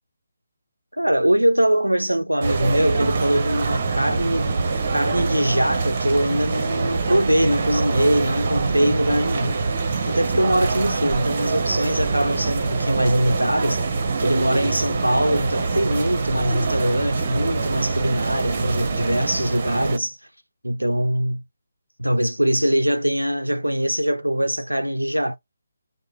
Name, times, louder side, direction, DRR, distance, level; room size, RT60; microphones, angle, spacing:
voice 1, 0.9-9.6 10.1-13.8 14.2-20.2 20.6-21.4 22.0-25.4, equal, 85° right, 0.4 m, -22 dB
sound 1, 2.4-20.0, right 4 dB, 40° right, 0.7 m, -24 dB
3.1 x 2.1 x 3.6 m
figure-of-eight pair, 145°, 0 cm